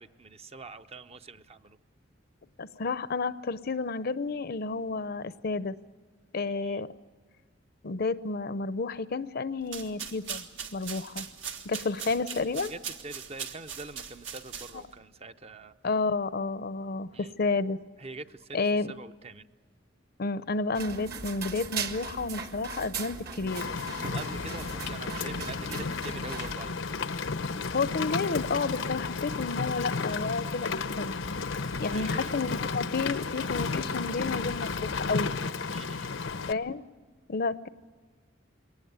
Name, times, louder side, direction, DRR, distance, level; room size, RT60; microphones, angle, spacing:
voice 1, 0.0-1.8 6.4-6.8 12.3-12.4 12.7-15.7 17.1-17.3 18.0-18.6 18.9-19.5 24.1-26.8 31.9-32.4 35.7-36.1, right 3 dB, 35° right, 10 dB, 0.6 m, -44 dB
voice 2, 2.6-5.8 6.3-6.9 7.8-10.4 10.7-11.3 11.6-12.7 15.8-17.8 18.5-18.9 20.2-23.7 27.7-31.2 31.8-35.3 36.5-36.8 37.3-37.7, left 4 dB, 55° left, 15 dB, 0.6 m, -31 dB
sound 1, 9.6-15.0, right 7 dB, 80° right, 1.7 m, -40 dB
sound 2, 20.7-26.6, right 5 dB, 55° right, 1.5 m, -39 dB
Rain, 23.5-36.5, left 4 dB, 90° left, 0.9 m, -33 dB
22.0 x 18.5 x 9.4 m, 1.5 s
head